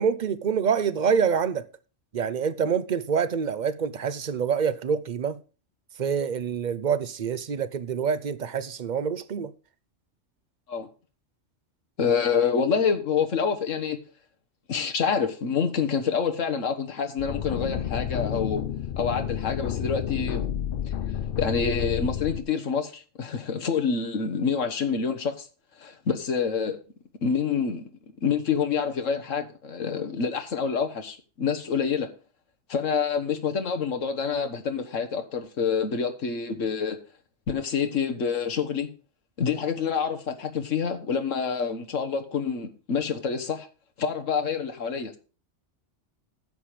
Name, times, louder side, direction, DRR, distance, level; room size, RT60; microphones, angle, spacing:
voice 1, 0.0-1.7 2.1-5.4 6.0-9.5, right 6 dB, 45° right, 0.8 m, -26 dB
voice 2, 12.0-14.0 14.7-18.6 19.0-20.5 21.4-25.5 25.8-26.8 27.2-27.9 28.2-32.1 32.7-37.0 37.5-38.9 39.4-43.7 44.0-45.2, left 6 dB, 85° left, 1.6 m, -27 dB
sound 1, 17.2-22.4, left 9 dB, 55° left, 0.7 m, -30 dB
11.0 x 7.6 x 4.9 m
omnidirectional pair, 1.3 m